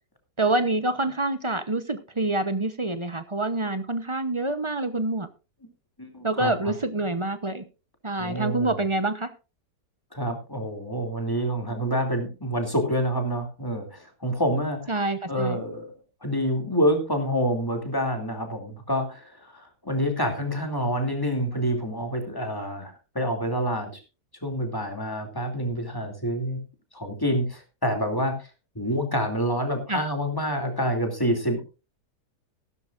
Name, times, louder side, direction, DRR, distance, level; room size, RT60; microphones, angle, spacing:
voice 1, 0.4-5.3 6.2-7.6 8.0-9.3 14.9-15.6 29.9-30.0, right 2 dB, 25° right, 10 dB, 0.7 m, -26 dB
voice 2, 6.0-6.7 8.2-8.8 10.1-14.8 15.3-15.9 16.2-24.0 24.4-26.6 26.9-28.4 28.7-31.6, equal, 15° left, 4 dB, 2.7 m, -27 dB
15.0 x 13.0 x 2.5 m, 0.31 s
omnidirectional pair, 1.8 m